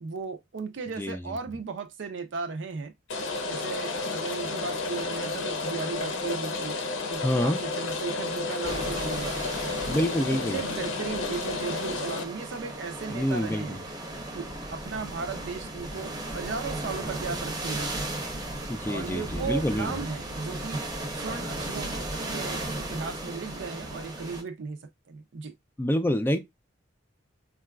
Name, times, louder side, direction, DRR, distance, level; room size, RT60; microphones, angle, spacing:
voice 1, 0.0-2.9 3.5-6.8 7.1-9.4 10.3-13.8 14.3-17.9 18.9-20.8 21.1-24.8 25.1-25.5, right 5 dB, 70° right, 0.5 m, -36 dB
Rain, 3.1-12.2, left 3 dB, 90° left, 0.6 m, -32 dB
voice 2, 7.2-7.6 9.9-10.6 13.1-13.8 18.7-20.0 25.8-26.4, left 1 dB, 10° left, 0.3 m, -27 dB
sound 1, 8.6-24.4, right 1 dB, 20° right, 0.7 m, -36 dB
3.8 x 2.3 x 2.2 m
head